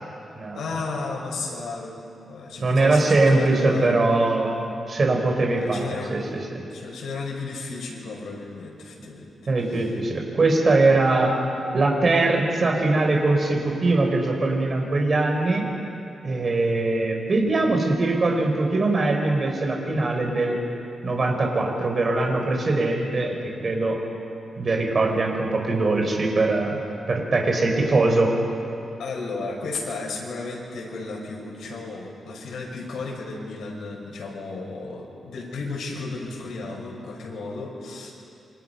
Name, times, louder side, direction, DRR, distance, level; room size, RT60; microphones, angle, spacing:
voice 1, 0.5-4.0 5.5-6.2 6.7-9.3 9.6-10.0 29.0-38.1, left 3 dB, 85° left, -2 dB, 6.0 m, -34 dB
voice 2, 2.6-6.4 9.5-11.3 11.7-15.7 16.2-20.6 21.0-24.0 24.6-26.7 27.1-28.3, right 2 dB, 35° right, 1 dB, 4.5 m, -22 dB
28.0 x 25.0 x 5.7 m, 2.7 s
wide cardioid pair, 140°, 0 cm